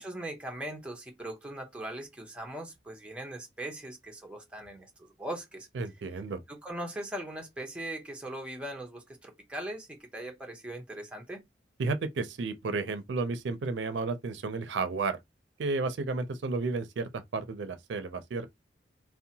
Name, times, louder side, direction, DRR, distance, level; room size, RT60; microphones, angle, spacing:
voice 1, 0.0-4.9 5.2-5.7 6.5-11.4, right 1 dB, 5° right, 0.7 m, -40 dB
voice 2, 5.7-6.4 11.8-15.2 15.6-18.5, right 3 dB, 80° right, 0.4 m, -32 dB
2.7 x 2.1 x 2.7 m
head